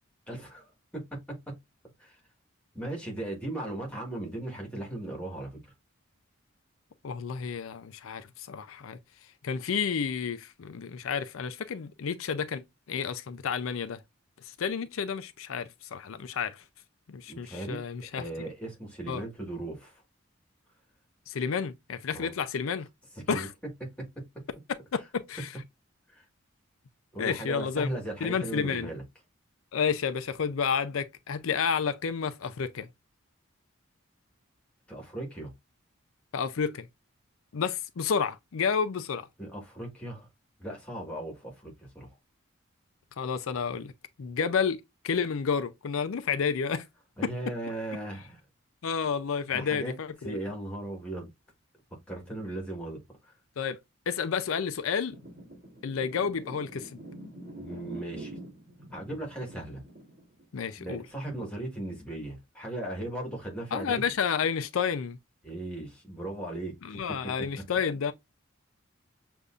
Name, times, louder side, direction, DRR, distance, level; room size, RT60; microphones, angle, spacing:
voice 1, 0.3-1.0 2.0-2.2 2.7-5.7 17.3-17.8 18.1-20.0 22.1-22.3 23.3-23.5 24.0-24.1 26.1-26.2 27.1-29.0 34.9-35.5 39.4-40.3 40.6-42.1 47.2-48.4 49.5-49.9 50.2-51.3 52.1-53.3 57.6-58.4 58.9-59.8 60.8-64.1 65.4-67.3, right 1 dB, 5° left, 1.6 m, -37 dB
voice 2, 7.0-9.0 9.4-12.6 12.9-14.0 14.4-16.6 17.1-18.2 19.1-19.2 21.3-22.9 23.3-23.5 24.9-25.0 25.3-25.5 27.2-27.9 28.2-28.9 29.7-32.9 36.3-36.8 37.5-39.3 43.2-43.9 44.2-46.8 47.2-47.3 48.8-50.4 53.6-53.8 54.1-55.1 55.8-56.9 60.5-61.0 63.7-65.2 66.8-68.1, left 6 dB, 80° left, 0.5 m, -30 dB
sound 1, 55.1-61.3 61.6-61.9, right 1 dB, 40° right, 3.0 m, -45 dB
6.7 x 2.6 x 2.4 m
head